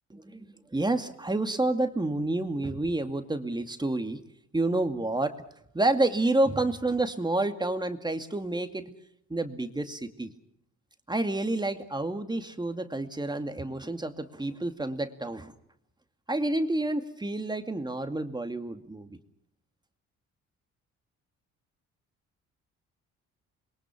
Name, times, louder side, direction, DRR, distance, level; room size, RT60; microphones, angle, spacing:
voice 1, 0.1-4.2 4.5-5.4 5.7-8.9 9.3-10.3 11.1-15.5 16.3-19.2, right 2 dB, 15° right, 7 dB, 2.3 m, -29 dB
27.5 x 22.5 x 6.2 m, 0.71 s
cardioid pair, 90°, 30 cm